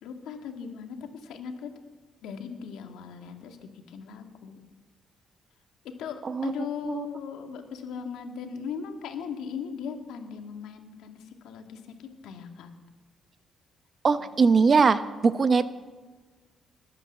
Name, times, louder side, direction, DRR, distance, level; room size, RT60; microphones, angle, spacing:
voice 1, 0.0-1.7 2.2-4.6 5.8-12.7 14.5-14.6, left 7 dB, 85° left, 4 dB, 2.0 m, -38 dB
voice 2, 14.0-15.7, right 5 dB, 40° right, 12 dB, 0.9 m, -21 dB
20.5 x 9.0 x 7.3 m, 1.4 s
cardioid pair, 90°, 0 cm